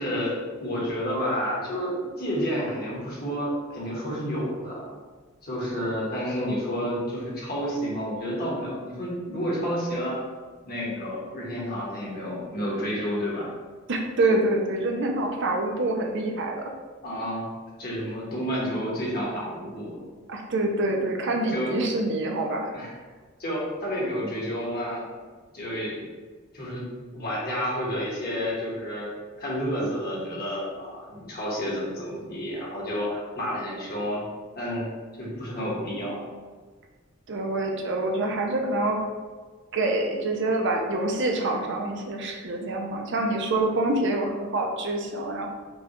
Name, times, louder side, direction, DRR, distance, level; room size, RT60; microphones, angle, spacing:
voice 1, 0.0-5.0 5.4-10.3 10.7-13.5 17.0-17.4 17.8-20.0 21.5-21.8 22.7-22.9 23.4-25.0 25.5-26.0 26.5-26.8 27.1-29.1 29.4-34.2 34.5-34.9 35.2-36.2, equal, 50° left, -5 dB, 1.3 m, -30 dB
voice 2, 13.9-16.6 20.3-22.7 37.3-39.0 39.7-45.5, right 2 dB, 60° right, 1 dB, 0.5 m, -26 dB
5.2 x 2.3 x 2.9 m, 1.4 s
head